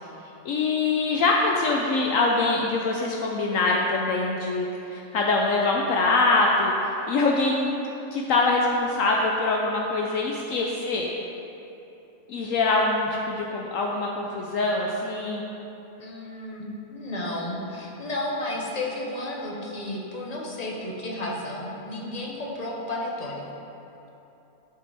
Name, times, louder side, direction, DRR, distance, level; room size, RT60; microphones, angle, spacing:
voice 1, 0.4-7.7 8.1-11.1 12.3-15.4, left 3 dB, 70° left, -1 dB, 1.0 m, -24 dB
voice 2, 16.0-23.4, left 1 dB, 30° left, -3 dB, 1.1 m, -32 dB
11.0 x 5.3 x 3.4 m, 3.0 s
omnidirectional pair, 1.5 m